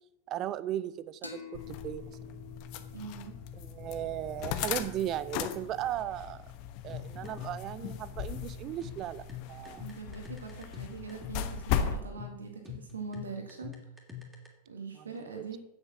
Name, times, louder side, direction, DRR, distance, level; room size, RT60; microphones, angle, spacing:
voice 1, 0.3-2.4 3.6-6.4 6.8-9.9 15.0-15.1 15.4-15.5, right 12 dB, 35° right, 16 dB, 0.6 m, -37 dB
sound 1, 1.2-4.6, left 6 dB, 85° left, 1.4 m, -49 dB
sound 2, 1.5-12.0, left 8 dB, 45° left, 1.0 m, -38 dB
voice 2, 2.9-3.4 9.8-13.7 14.7-15.6, right 4 dB, 70° right, 3 dB, 1.7 m, -42 dB
sound 3, 6.9-14.5, left 7 dB, 10° right, 2.7 m, -45 dB
8.9 x 8.1 x 6.1 m, 0.80 s
figure-of-eight pair, 90°, 0 cm